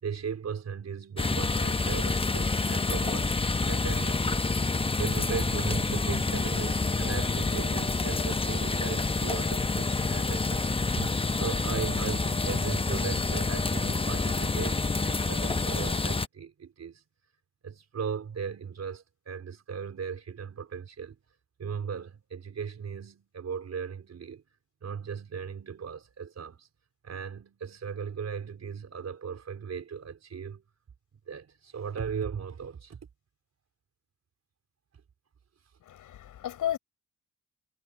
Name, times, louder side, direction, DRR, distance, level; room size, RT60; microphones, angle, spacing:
voice 1, 0.0-4.5 5.0-10.7 10.9-17.0 17.6-21.2 21.6-24.4 24.8-26.7 27.0-30.6 31.3-33.0, right 6 dB, 60° right, 4.2 m, -37 dB
sound 1, 1.2-16.3, left 3 dB, 20° left, 0.9 m, -28 dB
voice 2, 35.9-36.8, left 11 dB, 85° left, 6.2 m, -33 dB
cardioid pair, 80°, 31 cm